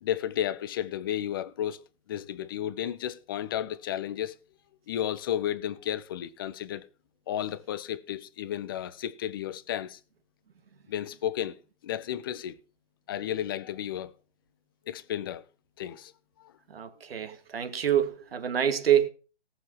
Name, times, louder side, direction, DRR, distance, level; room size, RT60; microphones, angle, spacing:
voice 1, 0.0-1.8 2.1-4.4 4.9-6.9 7.3-10.0 10.9-11.6 11.8-12.6 13.1-14.1 14.9-15.4 15.8-16.1 16.4-16.5, left 11 dB, 20° left, 0.6 m, -33 dB
voice 2, 16.7-19.1, right 10 dB, 55° right, 2.4 m, -26 dB
18.0 x 7.1 x 5.6 m
figure-of-eight pair, 135°, 36 cm